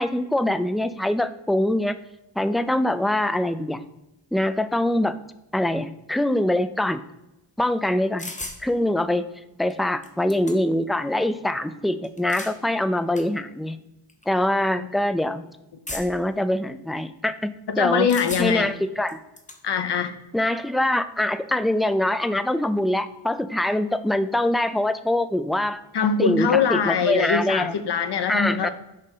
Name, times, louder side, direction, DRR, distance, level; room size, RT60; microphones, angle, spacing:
voice 1, 0.0-2.0 2.4-3.8 4.3-5.1 5.5-7.0 7.6-8.3 8.6-9.3 9.6-13.8 14.3-15.5 15.9-18.1 18.4-19.2 20.3-25.8 26.2-27.8 28.3-28.7, left 1 dB, ahead, 11 dB, 0.3 m, -24 dB
sound 1, 8.2-8.6 9.7-9.8 10.0-10.8 12.0-12.6 13.2-13.3 14.1-14.3 15.9-16.3 18.1-18.7 19.1-19.6, left 2 dB, 15° left, 0.9 m, -36 dB
voice 2, 17.7-18.7 19.6-20.1 25.9-28.7, left 6 dB, 60° left, 8 dB, 0.8 m, -22 dB
6.6 x 5.0 x 5.5 m, 0.95 s
wide cardioid pair, 115°, 45 cm